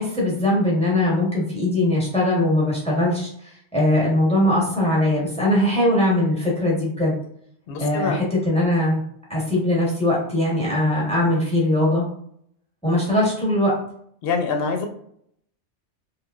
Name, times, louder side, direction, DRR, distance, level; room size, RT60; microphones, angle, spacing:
voice 1, 0.0-3.3 3.7-7.2 7.8-9.0 9.3-12.1 12.8-13.7, left 1 dB, 5° left, -4 dB, 1.0 m, -20 dB
voice 2, 7.7-8.2 14.2-14.9, left 5 dB, 60° left, 5 dB, 0.8 m, -25 dB
3.1 x 3.0 x 2.4 m, 0.67 s
omnidirectional pair, 1.2 m